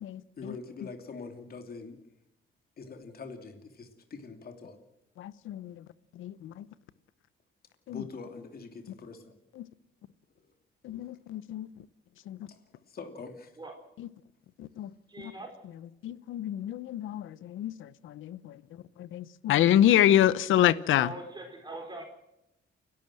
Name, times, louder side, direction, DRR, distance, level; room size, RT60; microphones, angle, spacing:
voice 1, 0.4-2.0 2.8-4.8 5.6-5.7 7.9-9.3 12.5-13.5, left 4 dB, 50° left, 2.9 m, -44 dB
voice 2, 5.2-5.8 6.1-6.7 7.9-8.0 9.6-9.7 10.8-11.9 12.3-12.5 14.0-14.1 14.6-14.9 15.2-15.3 16.0-21.1, left 12 dB, 80° left, 0.9 m, -27 dB
voice 3, 15.1-15.5 20.9-22.0, right 2 dB, 20° right, 4.1 m, -41 dB
29.0 x 12.5 x 7.7 m
cardioid pair, 90°, 20 cm